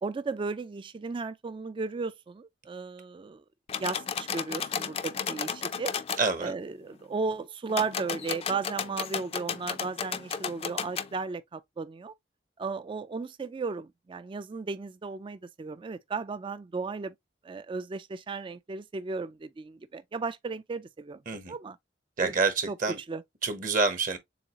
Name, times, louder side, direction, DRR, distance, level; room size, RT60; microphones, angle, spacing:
voice 1, 0.0-3.4 3.8-6.0 6.4-12.1 12.6-17.1 17.4-21.2 21.5-21.8 22.2-22.3 22.7-22.8 23.1-23.2, right 4 dB, 30° right, 0.3 m, -35 dB
sound 1, 3.7-6.2 7.7-11.1, left 7 dB, 35° left, 0.4 m, -33 dB
voice 2, 6.2-6.5 21.3-21.5 22.2-23.0 23.4-24.2, right 4 dB, 50° right, 0.9 m, -27 dB
7.1 x 2.4 x 2.8 m
head